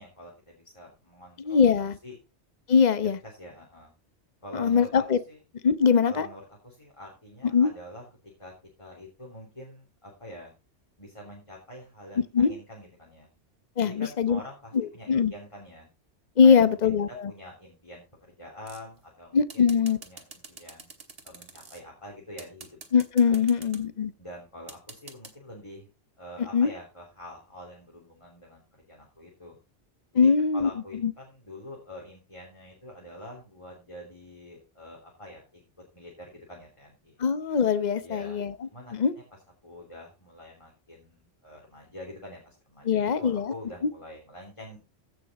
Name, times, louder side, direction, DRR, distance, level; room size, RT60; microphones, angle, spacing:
voice 1, 0.0-2.1 3.2-3.9 4.4-5.4 6.0-8.0 8.4-8.5 8.8-10.5 11.0-13.3 13.8-15.9 16.4-19.7 20.0-20.9 21.2-22.8 23.3-23.7 24.2-25.9 26.2-29.6 30.1-35.6 35.9-37.2 38.0-38.4 38.7-38.9 39.6-44.8, equal, 25° left, -2 dB, 3.2 m, -46 dB
voice 2, 1.4-2.0 2.7-3.2 4.5-5.2 5.6-6.3 7.5-7.7 12.3-12.5 13.8-14.4 14.7-15.3 16.4-17.3 19.3-20.0 22.9-24.1 26.5-26.7 30.1-30.7 31.0-31.1 37.2-39.1 42.8-43.5, left 6 dB, 40° left, 13 dB, 0.9 m, -22 dB
sound 1, 18.7-19.0 19.5-21.8 22.4-23.8 24.7-25.3, right 4 dB, 55° right, 1.9 m, -45 dB
15.5 x 6.5 x 4.2 m, 0.29 s
omnidirectional pair, 1.2 m